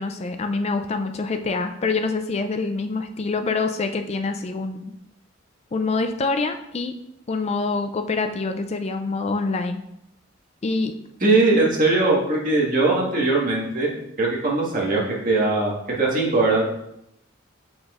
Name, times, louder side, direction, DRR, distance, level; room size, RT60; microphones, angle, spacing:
voice 1, 0.0-4.9 5.7-6.9 7.3-9.8 10.6-10.9, left 3 dB, 30° left, 7 dB, 0.4 m, -25 dB
voice 2, 11.2-13.9 14.2-16.6, right 2 dB, 45° right, -4 dB, 1.8 m, -20 dB
7.2 x 6.0 x 2.5 m, 0.80 s
head